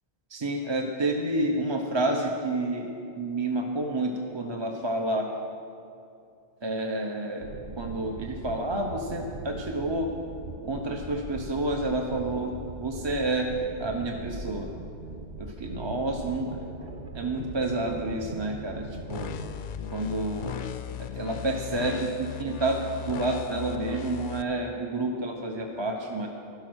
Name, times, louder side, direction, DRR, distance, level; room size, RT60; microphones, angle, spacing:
voice 1, 0.3-2.9 3.2-5.3 6.6-7.5 7.8-10.1 10.6-12.5 12.8-13.5 13.8-14.7 15.4-16.6 17.1-19.3 19.9-20.6 21.0-26.3, right 2 dB, 30° right, 2 dB, 0.8 m, -29 dB
sound 1, 7.4-19.6, right 3 dB, 65° right, 1.0 m, -40 dB
sound 2, 19.1-24.4, left 7 dB, 60° left, 0.6 m, -37 dB
12.0 x 11.5 x 6.2 m, 2.6 s
omnidirectional pair, 1.0 m